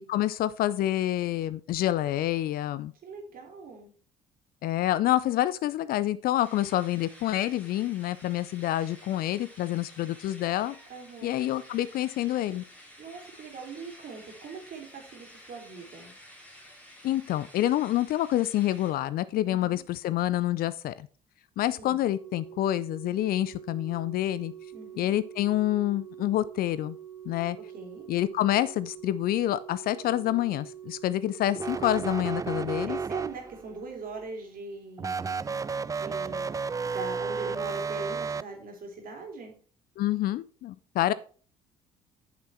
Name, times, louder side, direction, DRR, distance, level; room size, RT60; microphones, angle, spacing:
voice 1, 0.1-2.9 4.6-10.7 11.2-12.6 17.0-21.1 21.6-24.5 25.0-27.0 27.3-27.6 28.1-33.0 40.0-41.1, left 13 dB, 55° left, 17 dB, 0.5 m, -27 dB
voice 2, 3.0-3.9 10.9-11.4 13.0-16.1 19.5-19.8 21.8-22.0 24.7-25.1 27.7-28.1 32.5-36.6 36.8-39.5, right 3 dB, 50° right, 2 dB, 3.3 m, -42 dB
sound 1, 6.4-18.9, equal, 5° left, 2.9 m, -52 dB
Organ, 22.1-32.9 34.1-34.3, right 10 dB, 70° right, 4.0 m, -46 dB
sound 2, 31.5-33.7 35.0-38.4, right 5 dB, 20° right, 0.4 m, -32 dB
8.8 x 6.9 x 4.3 m, 0.41 s
figure-of-eight pair, 50°, 19 cm